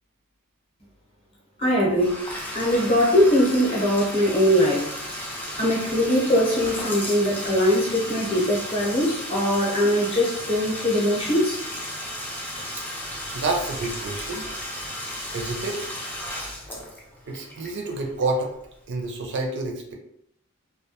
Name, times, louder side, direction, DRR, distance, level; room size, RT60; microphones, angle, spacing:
voice 1, 1.6-2.2 2.5-4.9 5.6-11.6, equal, 25° left, -4 dB, 0.7 m, -21 dB
Bathtub (filling or washing), 1.9-18.6, equal, 10° left, 0.3 m, -34 dB
voice 2, 13.3-14.5 15.3-15.9 17.3-18.5 18.9-19.9, right 2 dB, 55° right, 1 dB, 0.4 m, -28 dB
2.3 x 2.2 x 2.8 m, 0.76 s
head